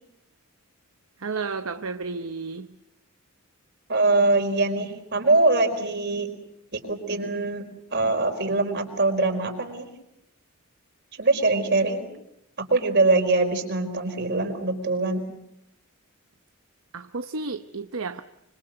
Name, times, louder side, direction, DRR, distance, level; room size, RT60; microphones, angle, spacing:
voice 1, 1.2-2.7 16.9-18.2, right 4 dB, 75° right, 1.0 m, -32 dB
voice 2, 3.9-6.3 6.7-7.6 7.9-9.9 11.2-12.0 12.6-15.2, right 2 dB, 55° right, 5.0 m, -23 dB
26.5 x 25.5 x 7.7 m
head